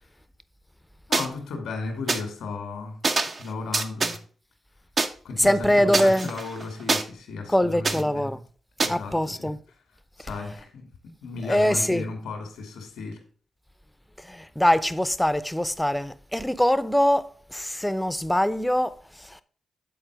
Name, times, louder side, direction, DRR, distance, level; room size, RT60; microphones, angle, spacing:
voice 1, 1.1-3.0 3.4-4.2 5.2-8.4 8.8-9.5 10.2-13.2, left 4 dB, 90° left, 1.9 m, -35 dB
sound 1, 1.1-1.3 2.1-2.2 3.0-3.4 3.7-4.2 5.0-5.1 5.9-7.0 7.8-8.0 8.8-8.9, right 3 dB, 50° right, 0.9 m, -24 dB
voice 2, 5.4-6.3 7.5-8.4 8.9-9.6 11.4-12.0 14.2-19.4, equal, 10° left, 0.7 m, -23 dB
9.0 x 4.2 x 4.7 m
supercardioid pair, 45°, 0 cm